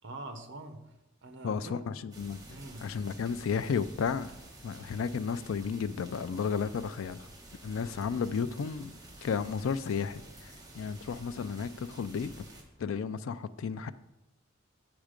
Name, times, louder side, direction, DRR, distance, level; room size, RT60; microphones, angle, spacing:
voice 1, 0.0-0.9 1.2-1.9 2.5-2.9, right 2 dB, 65° right, 8 dB, 0.9 m, -44 dB
voice 2, 1.4-2.4 2.8-4.3 4.6-7.3 7.6-8.9 9.2-12.3 12.8-13.9, left 6 dB, 80° left, 14 dB, 0.4 m, -33 dB
sound 1, 2.1-12.6, right 1 dB, 20° right, 1.3 m, -51 dB
7.4 x 5.9 x 5.1 m, 0.94 s
head